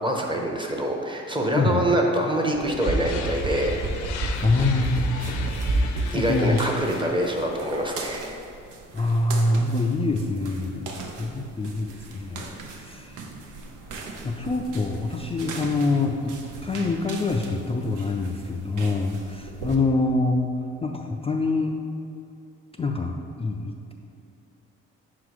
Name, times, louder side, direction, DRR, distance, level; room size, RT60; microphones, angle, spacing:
voice 1, 0.0-3.8 6.1-8.4, right 1 dB, 15° right, 1 dB, 0.8 m, -25 dB
sound 1, 2.5-6.0 6.3-6.4, right 2 dB, 65° right, 1.0 m, -27 dB
sound 2, 2.8-8.1, left 6 dB, 70° left, 0.6 m, -39 dB
sound 3, 3.3-19.8, right 3 dB, 90° right, 0.8 m, -41 dB
voice 2, 4.4-5.6 5.9-6.6 8.9-12.5 12.8-13.2 14.2-16.4 16.6-20.5 20.8-21.8 22.8-23.9, left 2 dB, 20° left, 3 dB, 0.3 m, -25 dB
5.9 x 3.9 x 4.7 m, 2.6 s
cardioid pair, 90°, 30 cm